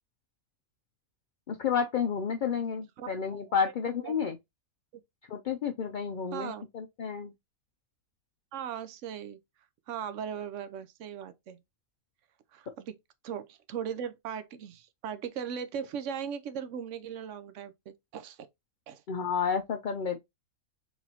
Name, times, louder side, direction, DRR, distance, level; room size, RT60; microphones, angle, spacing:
voice 1, 1.5-4.4 5.3-7.3 19.1-20.2, left 6 dB, 65° left, 0.5 m, -31 dB
voice 2, 3.0-3.6 4.0-4.2 4.9-5.0 6.3-6.7 8.5-9.4 9.9-11.6 12.5-13.0 13.2-18.5 18.9-19.0, right 8 dB, 65° right, 1.0 m, -38 dB
4.4 x 4.0 x 2.8 m
omnidirectional pair, 1.5 m